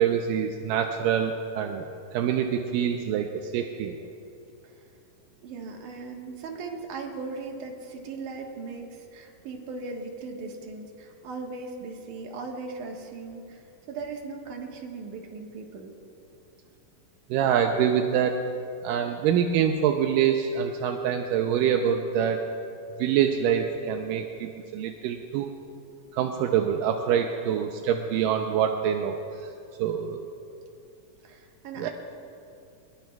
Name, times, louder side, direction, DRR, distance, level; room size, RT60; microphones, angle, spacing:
voice 1, 0.0-1.8 2.1-4.0 17.3-18.4 18.8-22.5 23.0-25.5 26.1-29.2 29.8-30.3 31.8-31.9, right 8 dB, 85° right, 3 dB, 2.3 m, -25 dB
voice 2, 5.4-15.9 31.2-31.9, right 4 dB, 70° right, 1 dB, 2.8 m, -38 dB
22.5 x 21.0 x 2.3 m, 2.6 s
omnidirectional pair, 3.9 m